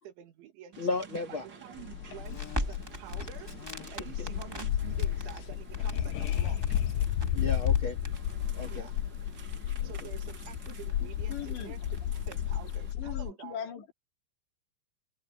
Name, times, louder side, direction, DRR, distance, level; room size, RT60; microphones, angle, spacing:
voice 1, 0.0-0.8 1.3-3.5 3.9-6.7 8.7-9.0 9.8-12.0 12.3-13.6, right 11 dB, 80° right, 4.6 m, -48 dB
sound 1, 0.7-12.9, right 6 dB, 55° right, 1.2 m, -51 dB
voice 2, 0.8-1.5 3.8-4.3 7.3-8.0 8.5-8.9 9.8-10.1, left 4 dB, 45° left, 1.8 m, -35 dB
sound 2, 1.8-13.3, left 10 dB, 85° left, 1.9 m, -32 dB
Crackle, 2.2-12.7, right 1 dB, 10° right, 1.9 m, -43 dB
voice 3, 11.0-11.8 12.9-13.9, left 9 dB, 70° left, 5.2 m, -40 dB
omnidirectional pair, 5.3 m